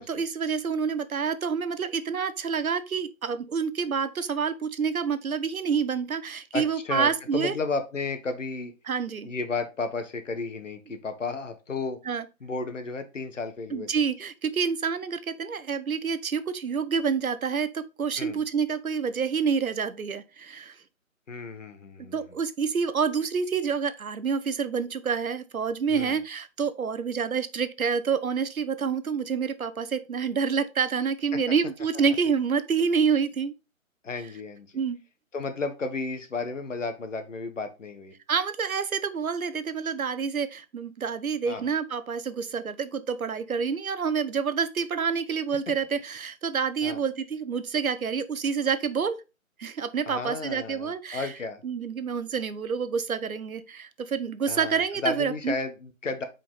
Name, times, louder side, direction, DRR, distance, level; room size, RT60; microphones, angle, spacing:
voice 1, 0.0-7.5 8.9-9.3 12.1-12.2 13.7-20.8 22.0-33.5 34.7-35.0 38.3-49.2 49.6-51.3 51.6-55.5, right 6 dB, 80° right, 1.0 m, -28 dB
voice 2, 6.5-8.7 9.2-12.0 12.4-14.0 18.2-18.4 21.3-22.2 25.9-26.2 34.0-34.7 35.3-38.1 41.4-41.7 46.8-47.0 50.1-51.6 54.5-56.2, left 3 dB, 60° left, 1.4 m, -33 dB
5.4 x 5.1 x 3.9 m
hypercardioid pair, 175°, 42 cm